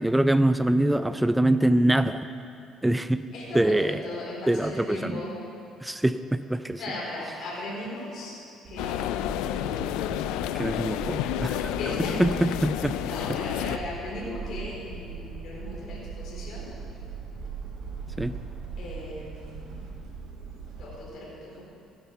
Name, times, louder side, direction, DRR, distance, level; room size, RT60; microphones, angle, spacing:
voice 1, 0.0-2.3 2.8-4.0 4.5-5.2 5.8-6.8 10.5-11.8 12.2-13.4 18.2-18.4, right 1 dB, 10° right, 12 dB, 0.4 m, -24 dB
voice 2, 3.3-5.3 6.8-8.4 8.7-9.1 9.5-10.4 11.8-12.2 13.0-16.7 18.8-19.8 20.8-21.7, left 1 dB, 60° left, -5 dB, 4.2 m, -37 dB
sound 1, 8.6-20.9, right 5 dB, 65° right, 3.8 m, -40 dB
sound 2, 8.8-13.8, left 12 dB, 85° left, 0.4 m, -30 dB
16.0 x 9.9 x 5.8 m, 2.6 s
cardioid pair, 90°, 0 cm